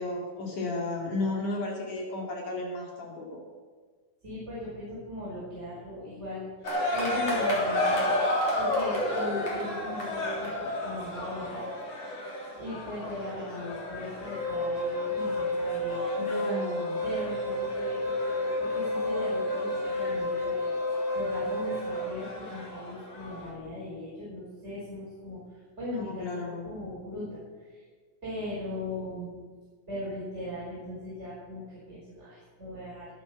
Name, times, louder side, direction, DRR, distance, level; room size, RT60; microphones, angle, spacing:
voice 1, 0.0-3.4 13.4-13.8 16.2-17.1 25.9-26.7, left 2 dB, 70° left, -1 dB, 3.8 m, -34 dB
voice 2, 4.2-8.1 8.6-11.7 12.6-16.0 17.0-26.3 26.6-27.8 28.2-29.4 29.9-33.1, left 1 dB, 20° right, -9 dB, 5.6 m, -38 dB
sound 1, 6.6-23.5, left 1 dB, 50° left, 4.4 m, -33 dB
Wind instrument woodwind instrument, 14.2-22.1, left 1 dB, 5° left, 1.4 m, -31 dB
21.0 x 8.2 x 6.9 m, 1.5 s
omnidirectional pair, 3.8 m